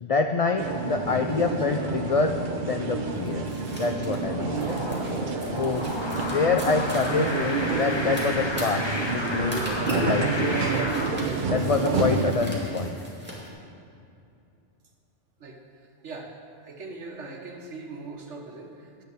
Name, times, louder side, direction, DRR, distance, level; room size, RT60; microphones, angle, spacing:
voice 1, 0.0-3.5 3.8-4.6 5.5-10.7 11.5-13.0, left 4 dB, 70° left, 5 dB, 0.3 m, -27 dB
sound 1, 0.6-12.3, right 4 dB, 45° right, 0.9 m, -29 dB
sound 2, 3.1-13.5, equal, 10° right, 2.1 m, -42 dB
sound 3, 4.0-11.1, left 2 dB, 25° left, 0.9 m, -32 dB
voice 2, 16.0-16.4 16.6-19.0, right 3 dB, 80° right, 2 dB, 1.5 m, -40 dB
9.8 x 6.6 x 8.0 m, 2.6 s
omnidirectional pair, 1.2 m